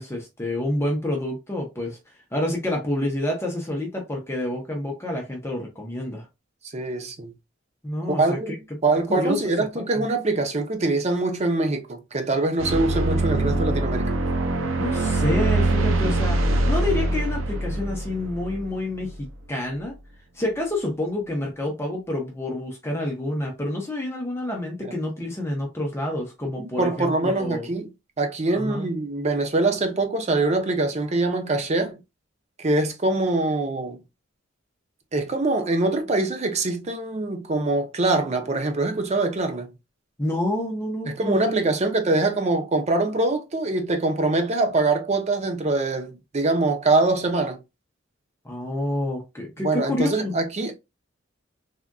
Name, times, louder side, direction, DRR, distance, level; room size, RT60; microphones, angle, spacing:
voice 1, 0.0-2.0 2.3-6.3 7.8-8.4 9.1-9.5 9.7-10.0 14.8-16.4 16.7-19.9 20.3-27.7 28.6-28.9 40.2-41.6 48.4-50.4, left 1 dB, 15° left, 0.7 m, -28 dB
voice 2, 6.7-7.3 8.2-14.1 26.6-27.9 28.2-32.0 32.6-34.0 35.1-39.7 41.1-47.6 49.6-50.7, right 2 dB, 35° right, 0.6 m, -24 dB
sound 1, 12.6-19.3, right 2 dB, 85° right, 0.6 m, -23 dB
3.5 x 2.5 x 2.2 m
head